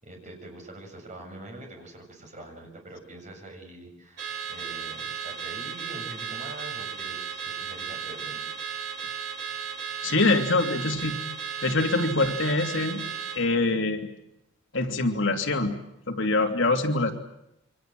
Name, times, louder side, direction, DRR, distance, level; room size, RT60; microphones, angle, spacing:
voice 1, 0.0-8.5, right 1 dB, 35° right, 2 dB, 7.3 m, -44 dB
Car / Alarm, 4.2-13.4, right 7 dB, 55° right, 5.5 m, -35 dB
voice 2, 10.0-11.2 11.6-13.0 13.3-14.1 14.7-15.7 16.1-17.1, left 2 dB, 65° left, 4 dB, 2.9 m, -24 dB
28.5 x 24.5 x 7.7 m, 0.83 s
head